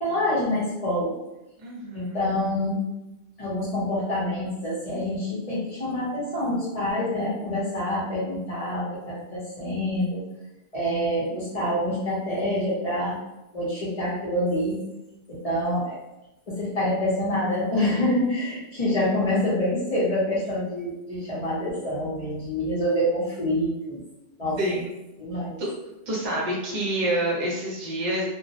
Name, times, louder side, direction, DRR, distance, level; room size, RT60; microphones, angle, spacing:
voice 1, 0.0-1.1 1.9-2.8 3.4-10.2 10.7-13.2 13.5-14.8 15.3-16.0 16.5-24.0 24.4-24.8 25.2-25.6, left 1 dB, 40° left, -7 dB, 0.6 m, -26 dB
voice 2, 1.6-2.2 24.6-24.9 25.6-25.7 26.1-28.3, right 1 dB, 40° right, -4 dB, 0.7 m, -27 dB
2.2 x 2.0 x 2.7 m, 0.94 s
omnidirectional pair, 1.3 m